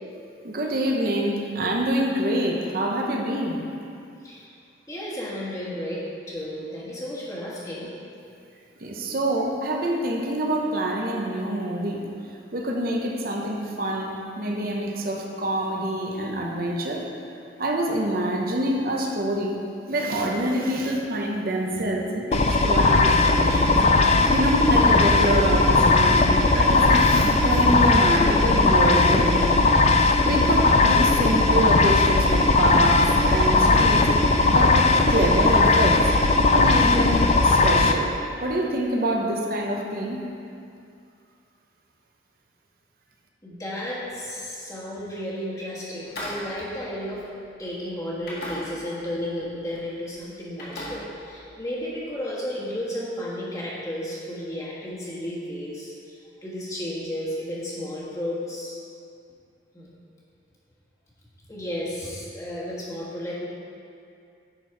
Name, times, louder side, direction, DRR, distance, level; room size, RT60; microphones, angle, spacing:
voice 1, 0.4-3.6 8.8-12.0 12.5-17.0 17.6-19.6 19.9-23.7 24.3-29.6 30.2-34.1 34.5-36.0 36.5-40.2, right 1 dB, 50° right, 0 dB, 0.9 m, -26 dB
voice 2, 4.2-4.5 4.9-7.9 43.4-47.2 47.6-58.8 59.7-59.9 61.5-63.5, equal, 20° left, -7 dB, 1.5 m, -33 dB
sound 1, 22.3-37.9, left 3 dB, 35° left, 0.4 m, -18 dB
sound 2, 46.0-47.7 48.2-49.1 49.4-49.8 50.1-51.7, left 1 dB, 60° left, 1.9 m, -38 dB
9.9 x 4.6 x 4.6 m, 2.4 s
head